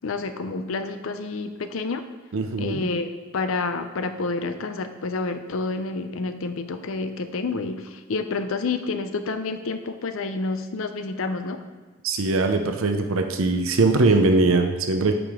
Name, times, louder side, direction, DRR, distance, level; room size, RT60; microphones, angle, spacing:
voice 1, 0.0-2.1 2.6-11.6, left 3 dB, 70° left, 9 dB, 0.5 m, -29 dB
voice 2, 2.3-2.9 12.0-15.1, right 3 dB, 75° right, 5 dB, 0.6 m, -21 dB
8.3 x 5.1 x 3.6 m, 1.4 s
head